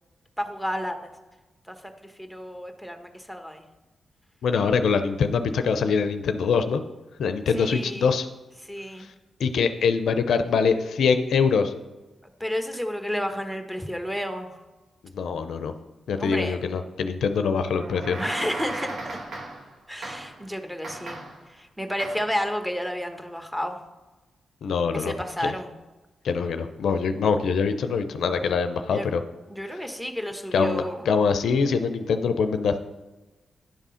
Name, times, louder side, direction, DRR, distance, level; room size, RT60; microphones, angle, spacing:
voice 1, 0.4-1.0 1.7-1.8 2.0-3.6 7.5-8.1 8.7-9.1 12.4-14.5 16.2-16.6 18.2-19.2 19.9-21.2 21.5-23.8 24.9-25.7 28.9-29.1 29.5-31.1, equal, 5° right, 5 dB, 1.1 m, -31 dB
voice 2, 4.4-6.8 7.2-8.3 9.0-9.1 9.4-11.7 15.1-15.7 16.1-18.2 24.6-25.1 25.4-25.5 26.2-29.2 30.5-32.8, left 5 dB, 75° left, 9 dB, 0.5 m, -24 dB
sound 1, 17.7-19.7 20.0-20.4 20.8-21.5 22.0-22.4, right 2 dB, 70° right, 1.2 m, -36 dB
10.0 x 3.6 x 5.6 m, 1.2 s
supercardioid pair, 45°, 0 cm